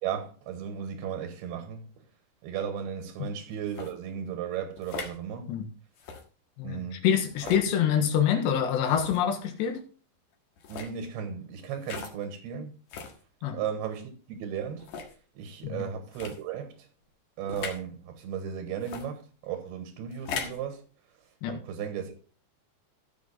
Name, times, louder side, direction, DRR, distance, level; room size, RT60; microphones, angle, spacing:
voice 1, 0.0-1.9 2.4-5.5 6.6-7.0 7.4-7.7 10.7-12.7 13.5-14.9 15.4-16.9 17.4-20.8 21.5-22.3, right 8 dB, 70° right, 3.0 m, -35 dB
sound 1, 3.7-3.9 4.8-5.2 6.0-6.2 7.3-7.7 8.9-9.2 10.6-10.9 11.8-12.1 12.9-13.2 13.9-14.0 14.8-15.1 16.1-16.4 17.5-17.8 18.8-19.1 20.1-20.6, left 6 dB, 60° left, 2.5 m, -38 dB
voice 2, 6.6-9.8 13.4-13.6 15.6-15.8 21.4-21.6, left 9 dB, 75° left, 3.6 m, -26 dB
15.0 x 6.6 x 4.0 m
omnidirectional pair, 5.2 m